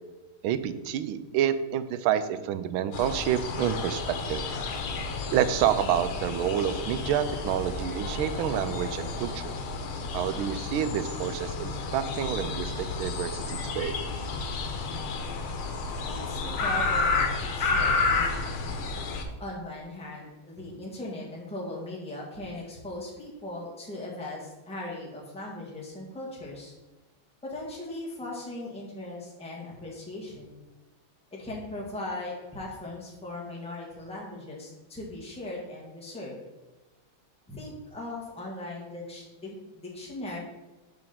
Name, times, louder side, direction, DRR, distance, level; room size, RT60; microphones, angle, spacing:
voice 1, 0.4-4.4 5.3-9.6 10.1-14.0, right 10 dB, 80° right, 12 dB, 1.4 m, -28 dB
sound 1, 2.9-19.2, left 4 dB, 85° left, 1.7 m, -31 dB
voice 2, 16.1-18.5 19.4-26.7 27.4-30.5 31.3-36.3 37.5-40.4, left 1 dB, 5° left, -4 dB, 1.4 m, -39 dB
7.7 x 3.9 x 5.9 m, 1.1 s
omnidirectional pair, 2.2 m